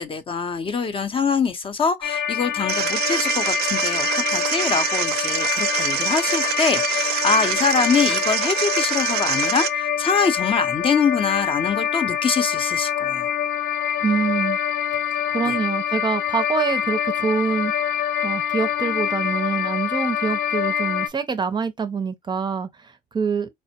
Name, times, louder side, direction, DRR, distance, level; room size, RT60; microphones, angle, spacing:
voice 1, 0.0-13.3, left 5 dB, 30° left, 0.6 m, -24 dB
sound 1, 2.0-21.1, left 9 dB, 75° left, 0.5 m, -25 dB
sound 2, 2.7-9.7, right 13 dB, 75° right, 0.5 m, -25 dB
voice 2, 14.0-14.6 15.3-17.7 18.2-23.5, right 5 dB, 25° right, 0.5 m, -25 dB
4.3 x 2.0 x 2.8 m
cardioid pair, 110°, 17 cm